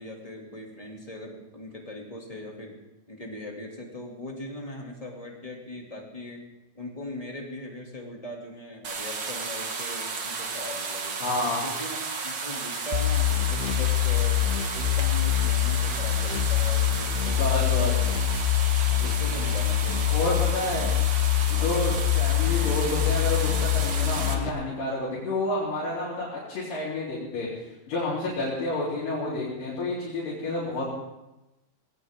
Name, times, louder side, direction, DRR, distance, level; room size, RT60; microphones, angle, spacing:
voice 1, 0.0-2.8 3.1-6.4 6.7-11.2 11.6-14.4 14.7-18.1 18.9-20.9, left 1 dB, 10° left, -1 dB, 1.9 m, -40 dB
sound 1, 8.8-24.3, right 4 dB, 50° right, 1.5 m, -33 dB
voice 2, 11.2-11.6 17.4-17.9 20.1-20.9 21.5-27.5 27.9-30.9, left 2 dB, 70° left, -9 dB, 5.4 m, -29 dB
sound 2, 12.9-24.5, left 12 dB, 90° left, 2.8 m, -25 dB
19.5 x 18.5 x 3.6 m, 0.96 s
omnidirectional pair, 4.1 m